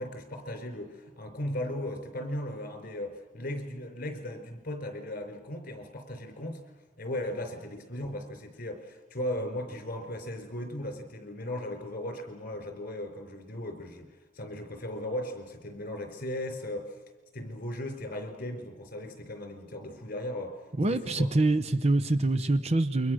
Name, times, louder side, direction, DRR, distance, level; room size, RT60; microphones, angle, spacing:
voice 1, 0.0-6.6 7.0-16.9 17.3-20.6 20.9-21.3, left 1 dB, 50° left, 6 dB, 4.3 m, -37 dB
voice 2, 20.8-23.1, right 2 dB, 35° right, 10 dB, 0.9 m, -25 dB
28.5 x 23.5 x 6.4 m, 1.2 s
head